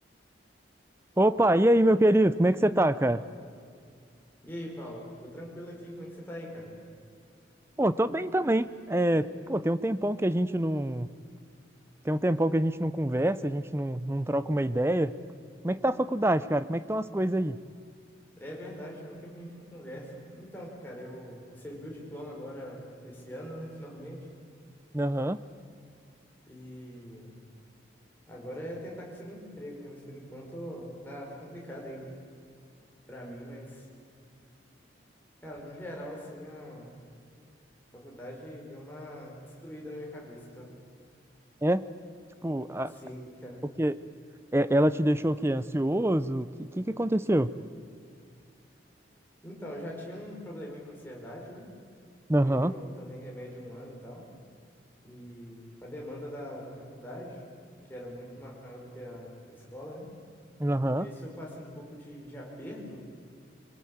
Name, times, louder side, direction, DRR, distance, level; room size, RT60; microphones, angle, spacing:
voice 1, 1.2-3.2 7.8-11.1 12.0-15.2 15.6-17.6 24.9-25.4 41.6-41.9 42.4-43.0 43.8-43.9 44.5-47.5 52.3-52.7 60.6-61.1, right 1 dB, 15° right, 14 dB, 0.6 m, -25 dB
voice 2, 4.4-6.7 18.4-24.3 26.5-27.3 28.3-32.1 33.1-33.9 35.4-36.9 37.9-40.7 43.0-43.6 49.4-51.7 52.4-54.3 55.0-57.4 57.9-60.1 60.7-63.0, equal, 10° left, -3 dB, 5.3 m, -42 dB
24.5 x 22.0 x 8.7 m, 2.3 s
head